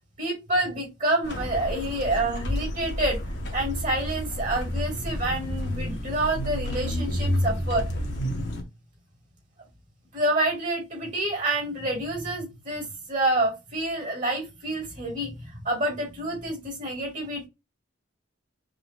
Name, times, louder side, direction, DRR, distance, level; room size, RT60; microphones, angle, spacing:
voice 1, 0.2-3.2 3.5-7.9 10.1-17.5, right 1 dB, 40° right, 0 dB, 2.7 m, -28 dB
sound 1, 1.2-8.6, equal, 55° left, 1.3 m, -30 dB
5.1 x 3.8 x 2.5 m, 0.23 s
head